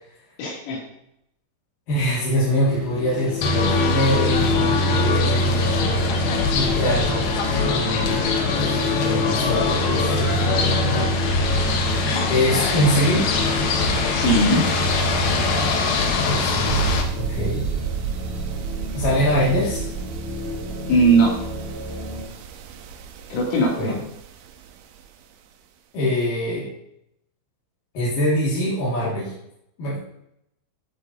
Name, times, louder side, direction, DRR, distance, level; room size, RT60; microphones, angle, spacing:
voice 1, 0.4-0.8 14.1-14.6 20.9-21.3 23.3-23.9, right 2 dB, 90° left, -3 dB, 5.5 m, -19 dB
voice 2, 1.9-6.1 6.5-7.3 7.7-8.1 8.7-10.4 12.3-13.3 16.2-17.6 18.9-19.9 23.8-24.0 25.9-26.7 27.9-29.3 29.8-30.0, equal, 50° left, -8 dB, 3.4 m, -24 dB
sound 1, 2.4-22.2, left 3 dB, ahead, 0.4 m, -31 dB
sound 2, 3.4-17.0, left 3 dB, 70° left, 2.3 m, -22 dB
sound 3, 16.7-25.1, right 8 dB, 85° right, 3.3 m, -32 dB
14.0 x 7.8 x 2.8 m, 0.79 s
omnidirectional pair, 5.6 m